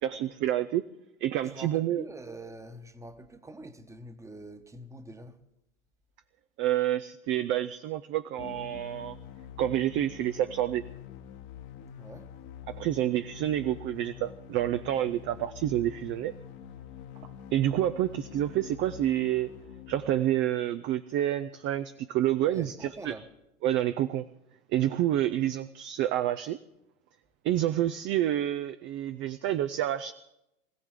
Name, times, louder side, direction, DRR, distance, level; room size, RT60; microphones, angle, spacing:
voice 1, 0.0-0.9 1.2-2.1 6.6-9.2 9.6-10.8 12.7-16.3 17.5-19.5 19.9-22.7 23.0-23.2 23.6-24.3 24.7-26.6 27.4-30.1, right 12 dB, 30° right, 0.5 m, -28 dB
voice 2, 1.4-5.4 12.0-12.3 15.0-15.2 22.5-23.3, right 1 dB, 5° right, 1.2 m, -45 dB
sound 1, 8.4-20.4, left 9 dB, 50° left, 1.5 m, -46 dB
24.0 x 16.0 x 3.8 m
hypercardioid pair, 95°, 41 cm